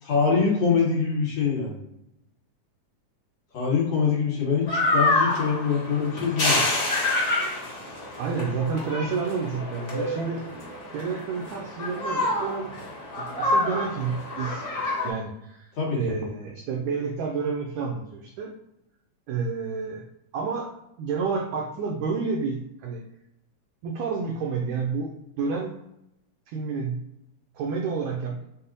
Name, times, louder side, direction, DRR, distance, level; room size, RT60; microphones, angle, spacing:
voice 1, 0.0-1.8 3.5-6.6 15.8-16.2, left 5 dB, 60° left, -5 dB, 2.2 m, -24 dB
sound 1, 4.7-15.1, left 2 dB, 85° left, 0.8 m, -27 dB
voice 2, 8.2-10.4 10.9-12.7 13.2-18.5 19.3-20.1 20.3-20.7 21.0-23.0 23.8-25.7 26.5-27.0 27.5-28.4, right 5 dB, 90° right, 0 dB, 1.6 m, -30 dB
5.6 x 2.0 x 3.9 m, 0.84 s
omnidirectional pair, 3.8 m